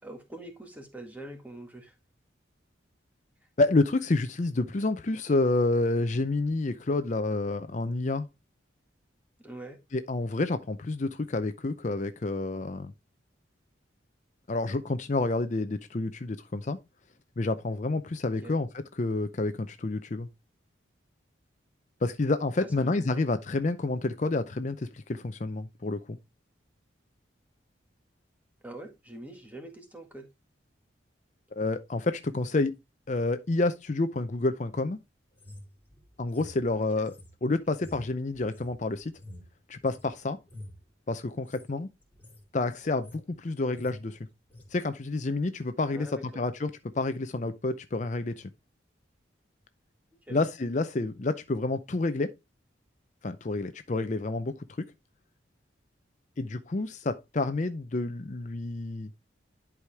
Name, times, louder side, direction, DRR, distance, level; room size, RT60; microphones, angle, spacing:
voice 1, 0.0-1.9 9.4-9.8 18.4-18.6 22.8-23.2 28.6-30.3 36.7-37.1 45.9-46.4 50.2-50.4, right 1 dB, 10° right, 1.8 m, -44 dB
voice 2, 3.6-8.3 9.9-12.9 14.5-16.8 17.4-18.7 19.0-20.3 22.0-26.2 31.6-32.8 33.1-35.0 36.2-37.1 37.4-39.1 39.7-40.4 41.1-41.9 42.5-44.2 44.7-46.1 46.3-48.5 50.3-52.3 53.2-54.9 56.4-59.1, left 2 dB, 40° left, 0.5 m, -29 dB
sound 1, 35.3-40.1 40.4-40.8 41.3-41.7 42.0-42.5 42.8-43.3 43.6-44.0 44.5-44.7, left 1 dB, 10° left, 2.5 m, -49 dB
11.0 x 4.9 x 3.3 m
head